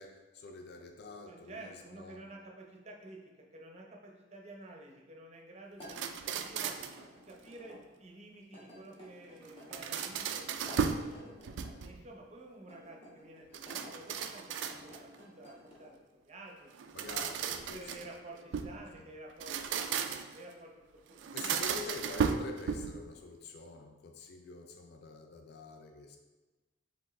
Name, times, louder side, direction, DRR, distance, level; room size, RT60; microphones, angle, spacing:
voice 1, 0.0-2.2 11.1-11.4 16.9-18.1 21.3-26.2, left 3 dB, 55° left, 4 dB, 0.4 m, -47 dB
voice 2, 1.3-6.8 7.2-11.3 11.8-15.9 16.2-16.7 17.1-17.3 17.6-19.9 20.3-20.7 21.1-21.6, right 2 dB, 35° right, 0 dB, 0.6 m, -51 dB
sound 1, 5.7-7.8 8.5-9.8 10.5-11.8 12.6-13.9 14.5-15.9, left 1 dB, 30° left, 1.3 m, -53 dB
sound 2, 5.8-7.0 9.4-11.1 11.4-12.1 13.5-15.1 16.7-18.8 19.3-20.4 21.2-23.0, right 6 dB, 65° right, 0.3 m, -35 dB
4.6 x 3.5 x 3.2 m, 1.2 s
head